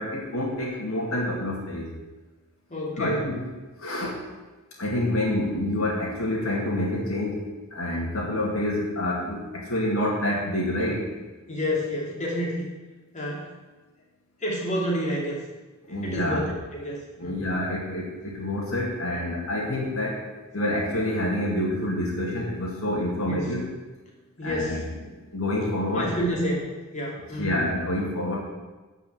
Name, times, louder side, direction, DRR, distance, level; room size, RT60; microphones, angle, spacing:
voice 1, 0.0-1.9 3.0-3.4 3.8-4.2 4.8-11.1 15.9-16.5 17.2-20.3 20.5-23.7 24.4-24.9 25.3-26.1 27.4-28.4, left 1 dB, 75° left, -4 dB, 2.3 m, -27 dB
voice 2, 2.7-3.3 11.5-12.6 13.1-13.5 14.4-15.4 15.9-17.5 23.3-23.5 24.4-24.8 25.9-27.6 28.0-28.1, equal, 35° left, -3 dB, 2.7 m, -29 dB
10.5 x 5.4 x 8.0 m, 1.2 s
head